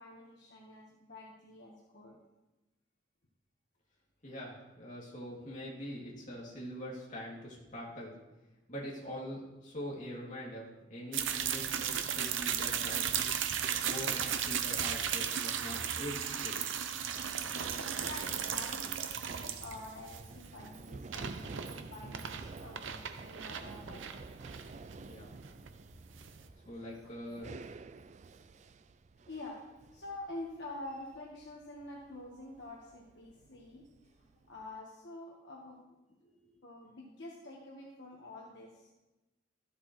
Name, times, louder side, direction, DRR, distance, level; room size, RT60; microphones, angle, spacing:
voice 1, 0.0-2.2 17.6-24.2 26.1-26.3 26.6-27.1 29.3-33.8 34.1-36.2 36.6-38.9, left 2 dB, 65° left, -3 dB, 1.4 m, -48 dB
voice 2, 4.2-8.1 8.7-13.3 13.8-16.6 24.9-25.3 26.6-27.5 36.2-36.3, equal, 40° left, -5 dB, 2.7 m, -43 dB
sound 1, 11.1-26.5, right 8 dB, 80° right, 0.7 m, -36 dB
Run, 16.3-34.7, right 3 dB, 35° right, 0.3 m, -50 dB
13.0 x 8.0 x 3.2 m, 1.0 s
head